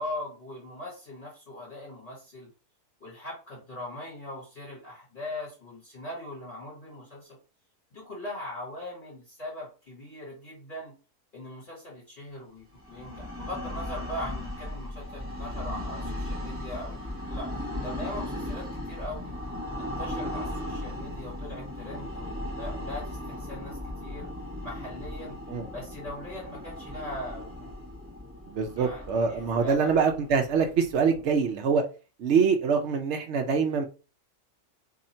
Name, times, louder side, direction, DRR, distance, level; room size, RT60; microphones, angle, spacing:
voice 1, 0.0-2.5 3.0-7.4 7.9-10.9 11.3-17.0 17.3-17.5 17.8-19.3 19.8-24.3 24.6-25.3 25.7-27.7 28.7-29.0 29.3-29.9, left 1 dB, 35° left, 1.7 m, -40 dB
sound 1, 12.8-31.5, left 1 dB, 10° right, 1.2 m, -37 dB
voice 2, 28.5-31.8 32.2-33.9, right 5 dB, 65° right, 0.7 m, -24 dB
2.7 x 2.7 x 4.2 m
omnidirectional pair, 1.7 m